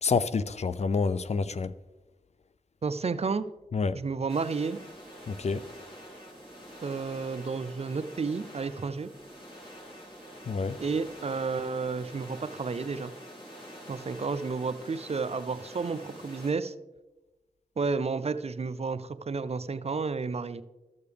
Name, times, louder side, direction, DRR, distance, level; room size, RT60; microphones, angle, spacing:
voice 1, 0.0-1.7 3.7-4.0 5.3-5.6 10.5-10.8, left 4 dB, 50° left, 0.4 m, -28 dB
voice 2, 2.8-3.4 3.9-4.8 6.8-9.1 10.8-13.1 13.9-16.7 17.8-20.6, right 4 dB, 45° right, 0.5 m, -31 dB
sound 1, 4.3-16.5, equal, 35° left, 2.7 m, -47 dB
13.5 x 6.6 x 3.4 m
cardioid pair, 45°, 14 cm